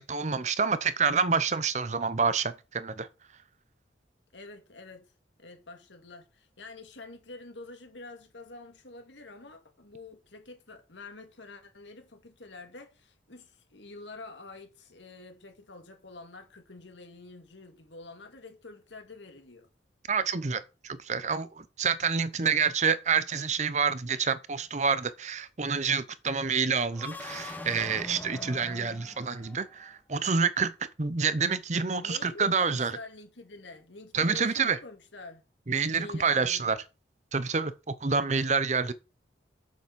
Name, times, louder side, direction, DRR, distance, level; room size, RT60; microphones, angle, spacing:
voice 1, 0.0-3.1 20.1-30.7 31.0-32.9 34.1-34.8 35.7-36.8 37.3-38.9, right 5 dB, 40° right, 0.7 m, -28 dB
voice 2, 4.3-5.1 5.4-19.7 22.4-22.5 32.0-35.4 35.9-36.7, left 3 dB, 85° left, 2.2 m, -47 dB
sound 1, 26.9-29.9, left 2 dB, 10° left, 1.1 m, -42 dB
7.6 x 7.0 x 5.4 m
head